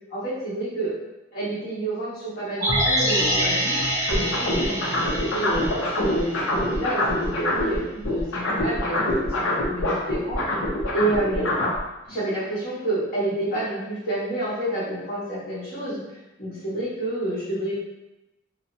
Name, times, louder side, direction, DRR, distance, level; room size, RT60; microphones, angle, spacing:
voice 1, 0.1-0.9 1.3-3.8 4.1-10.4 10.9-11.5 12.0-17.7, right 1 dB, 50° left, -9 dB, 1.3 m, -29 dB
sound 1, 2.6-6.8 7.1-7.2, equal, 20° right, 0.7 m, -26 dB
sound 2, 4.1-11.8, left 1 dB, 85° left, 0.6 m, -25 dB
2.8 x 2.1 x 2.5 m, 0.95 s
head